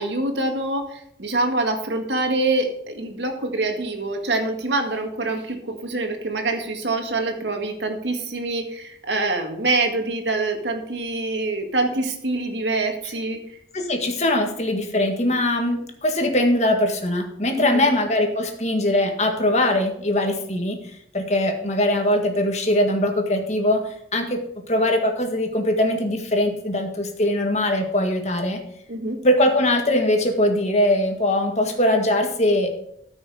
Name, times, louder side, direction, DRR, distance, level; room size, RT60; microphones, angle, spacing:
voice 1, 0.0-13.4 17.6-17.9 28.9-29.2, right 2 dB, 85° right, 4 dB, 1.9 m, -25 dB
voice 2, 13.7-23.8 24.1-24.4 24.7-28.6 29.2-32.7, left 1 dB, 40° left, 4 dB, 1.8 m, -21 dB
13.5 x 6.2 x 4.9 m, 0.74 s
head